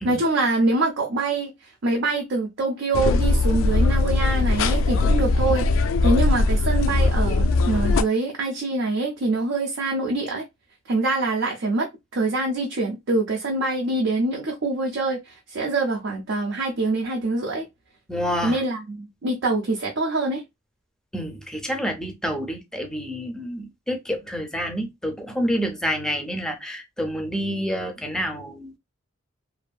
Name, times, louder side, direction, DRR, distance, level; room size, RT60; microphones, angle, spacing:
voice 1, 0.0-1.5 1.8-5.6 6.0-10.4 10.9-17.7 18.4-20.4, right 2 dB, 65° right, 0.5 m, -24 dB
sound 1, 2.9-8.0, left 3 dB, 70° left, 0.3 m, -20 dB
voice 2, 18.1-18.6 21.1-28.8, equal, 5° left, 0.5 m, -28 dB
2.6 x 2.5 x 2.2 m
head